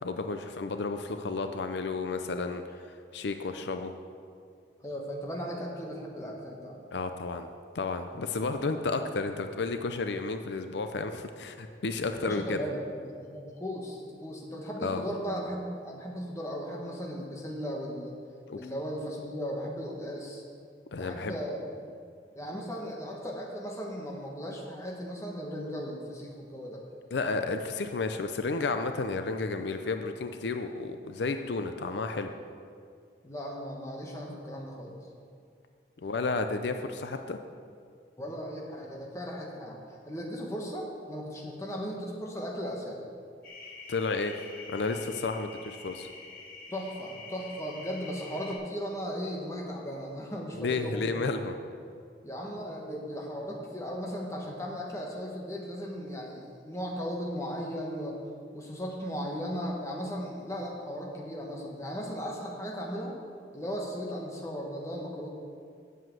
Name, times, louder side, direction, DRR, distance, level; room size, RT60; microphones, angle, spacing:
voice 1, 0.0-2.6 3.1-3.9 6.9-7.5 7.7-12.6 14.8-15.0 18.5-18.6 20.9-21.4 27.1-32.3 36.0-37.4 43.9-44.3 44.7-46.1 50.6-51.6, left 3 dB, 80° left, 7 dB, 0.5 m, -32 dB
voice 2, 4.8-6.8 12.1-18.2 18.5-20.4 21.0-21.7 22.3-26.8 33.2-35.0 38.2-39.8 40.1-43.0 46.7-51.1 52.2-58.2 58.5-63.1 63.5-65.3, equal, 15° left, -1 dB, 1.4 m, -37 dB
sound 1, 43.4-48.6, left 3 dB, 50° left, 2.1 m, -46 dB
7.9 x 7.6 x 7.6 m, 2.3 s
head